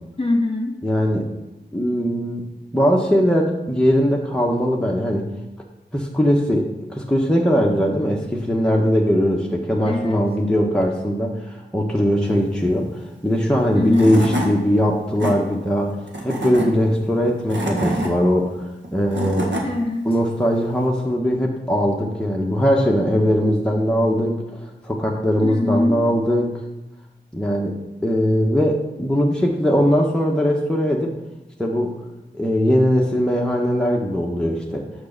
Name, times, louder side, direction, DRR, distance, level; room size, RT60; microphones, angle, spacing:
voice 1, 0.2-0.8 9.8-10.2 13.7-14.2 19.6-20.1 25.4-26.0, left 2 dB, 30° left, 1 dB, 1.6 m, -22 dB
voice 2, 0.8-1.3 1.7-2.4 2.7-5.3 5.9-12.9 13.2-16.0 16.2-18.5 18.9-19.5 20.0-26.6 27.3-31.1 31.6-31.9 32.3-34.8, equal, 5° left, -2 dB, 1.2 m, -20 dB
Tools / Wood, 13.6-13.7 13.9-14.5 15.0-15.3 16.1-16.7 17.3-18.1 18.8-19.6, equal, 75° right, 1.8 m, -25 dB
6.6 x 6.2 x 6.6 m, 1.0 s
wide cardioid pair, 70°, 19 cm